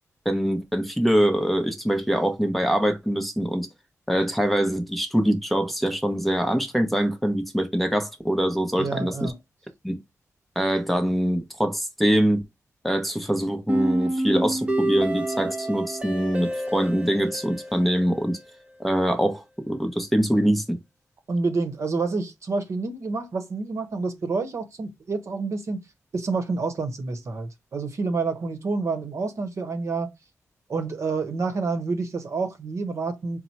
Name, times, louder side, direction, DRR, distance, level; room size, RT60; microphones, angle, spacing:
voice 1, 0.2-3.7 4.1-9.3 9.8-10.0 10.6-12.4 12.8-18.4 18.8-20.8, equal, ahead, 0.7 m, -24 dB
voice 2, 8.8-9.4 21.3-25.8 26.1-30.1 30.7-33.4, right 4 dB, 60° right, 0.9 m, -28 dB
sound 1, 13.7-18.7, right 1 dB, 20° right, 0.9 m, -28 dB
4.4 x 2.1 x 4.1 m
wide cardioid pair, 105°, 6 cm